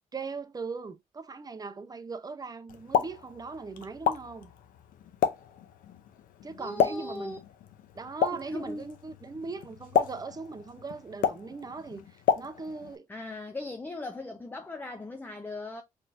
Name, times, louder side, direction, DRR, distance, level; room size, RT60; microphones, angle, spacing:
voice 1, 0.1-4.5 6.4-7.4 7.9-12.0 12.4-13.1, right 4 dB, 25° right, 0.6 m, -39 dB
Explosion, 2.7-13.0, left 8 dB, 80° left, 0.6 m, -32 dB
voice 2, 6.6-7.4 8.3-8.9 13.1-15.8, left 2 dB, 15° left, 0.5 m, -38 dB
4.3 x 3.2 x 2.6 m
cardioid pair, 85°, 14 cm